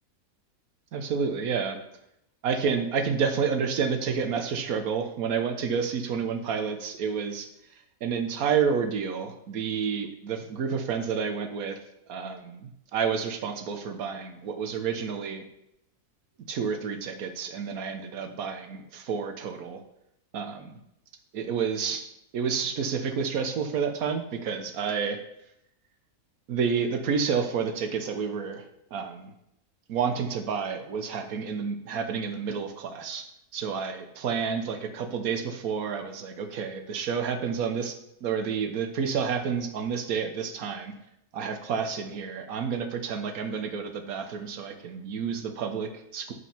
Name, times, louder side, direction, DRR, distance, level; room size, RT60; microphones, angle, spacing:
voice 1, 0.9-1.8 2.4-7.5 8.0-11.8 12.1-15.4 16.5-19.8 20.3-20.8 21.3-22.0 22.3-25.2 26.5-28.6 28.9-29.3 29.9-33.2 33.5-38.0 38.2-40.9 41.3-46.3, right 6 dB, 65° right, 6 dB, 1.3 m, -29 dB
8.3 x 4.9 x 5.7 m, 0.80 s
omnidirectional pair, 1.7 m